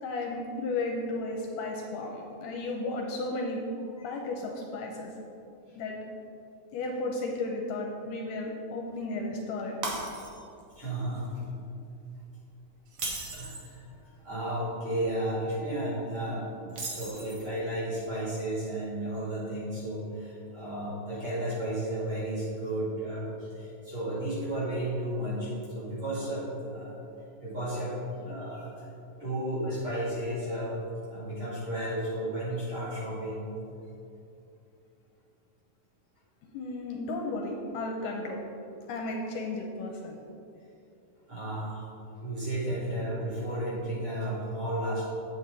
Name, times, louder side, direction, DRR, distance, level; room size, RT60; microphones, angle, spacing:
voice 1, 0.0-3.6 4.0-5.1 5.7-6.0 6.7-9.8 36.5-38.4 38.9-40.2, left 2 dB, 75° left, 0 dB, 2.1 m, -34 dB
Shatter, 9.8-10.6 11.0-11.3 12.9-13.7 16.7-17.6, right 3 dB, 60° right, 1.5 m, -36 dB
voice 2, 10.8-11.4 13.3-14.0 14.2-27.0 27.4-28.8 29.2-30.8 31.1-33.5 41.3-41.8 42.2-45.0, right 1 dB, 40° right, -7 dB, 2.9 m, -33 dB
9.0 x 7.9 x 4.0 m, 2.7 s
omnidirectional pair, 4.1 m